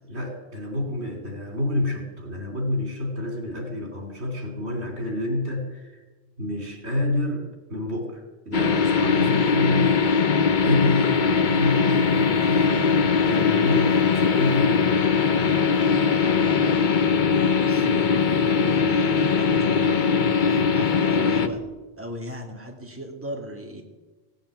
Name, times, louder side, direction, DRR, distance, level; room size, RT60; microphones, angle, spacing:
voice 1, 0.1-6.0 6.4-7.4 7.7-10.3 10.6-15.0, left 1 dB, 85° right, 3 dB, 3.2 m, -28 dB
sound 1, 8.5-21.5, left 5 dB, 50° left, 0.9 m, -21 dB
voice 2, 17.5-21.6 22.0-23.8, equal, 10° right, 1 dB, 2.1 m, -37 dB
16.5 x 8.9 x 8.1 m, 1.2 s
omnidirectional pair, 1.1 m